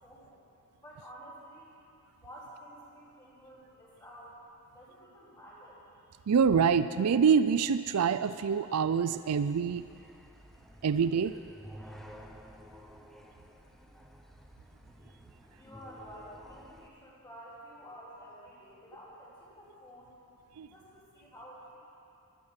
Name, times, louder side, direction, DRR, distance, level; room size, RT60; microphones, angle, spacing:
voice 1, 0.0-0.3 0.8-1.7 2.1-4.3 4.7-6.3 15.2-20.2 20.7-21.8, equal, 20° left, -9 dB, 4.6 m, -51 dB
voice 2, 6.3-9.8 10.8-11.3 20.6-20.7, right 6 dB, 85° right, 13 dB, 0.4 m, -26 dB
sound 1, 9.7-16.9, equal, ahead, 0.8 m, -52 dB
14.0 x 14.0 x 5.9 m, 2.6 s
head